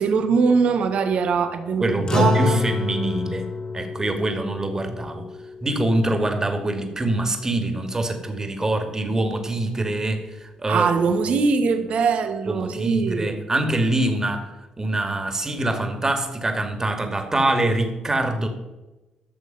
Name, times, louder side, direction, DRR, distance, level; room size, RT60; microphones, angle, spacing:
voice 1, 0.0-2.6 10.7-13.4, right 5 dB, 65° right, 7 dB, 1.3 m, -22 dB
voice 2, 1.8-3.5 3.7-5.3 5.6-11.4 12.5-18.5, right 1 dB, 25° right, 5 dB, 2.2 m, -24 dB
sound 1, 2.1-6.7, left 3 dB, 35° left, 2.5 m, -27 dB
14.0 x 6.6 x 5.5 m, 1.1 s
supercardioid pair, 60°, 2 cm